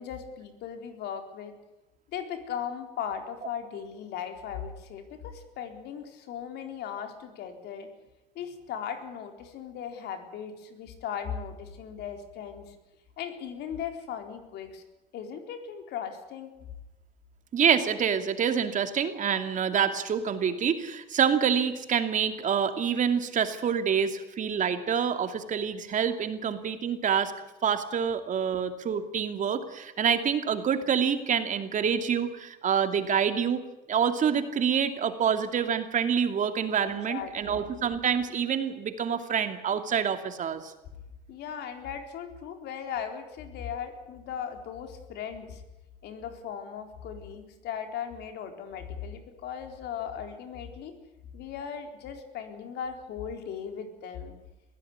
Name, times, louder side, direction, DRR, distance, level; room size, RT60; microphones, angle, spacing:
voice 1, 0.0-1.5 2.1-7.9 8.4-12.7 13.2-14.8 15.1-16.5 36.8-37.8 41.3-45.6 46.0-50.9 51.3-54.3, left 8 dB, 80° left, 6 dB, 4.1 m, -38 dB
voice 2, 17.5-27.3 27.6-33.6 33.9-40.7, right 7 dB, 50° right, 8 dB, 2.7 m, -27 dB
22.0 x 16.0 x 9.6 m, 1.0 s
cardioid pair, 110°, 17 cm